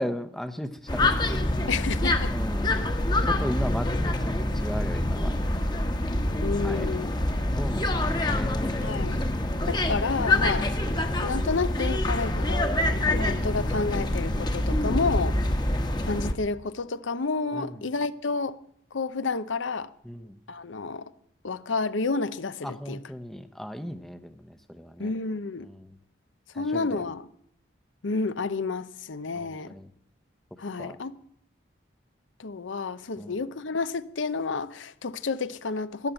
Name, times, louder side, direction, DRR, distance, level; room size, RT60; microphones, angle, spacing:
voice 1, 0.0-1.6 2.3-2.7 3.2-5.4 6.6-6.9 7.5-8.8 17.5-17.7 20.1-20.4 22.6-25.1 25.6-26.0 26.5-27.0 29.3-29.9 30.8-31.0 33.2-33.4, equal, ahead, 0.7 m, -36 dB
sound 1, 0.9-16.3, left 1 dB, 20° left, 1.1 m, -26 dB
voice 2, 1.7-2.3 6.4-7.1 8.8-9.3 9.7-10.7 11.2-12.7 13.1-15.4 16.0-18.6 18.9-19.9 20.5-21.1 21.4-23.0 25.0-25.7 26.5-27.3 28.0-29.7 30.6-31.2 32.4-36.1, left 4 dB, 85° left, 0.7 m, -30 dB
12.5 x 11.5 x 8.9 m
head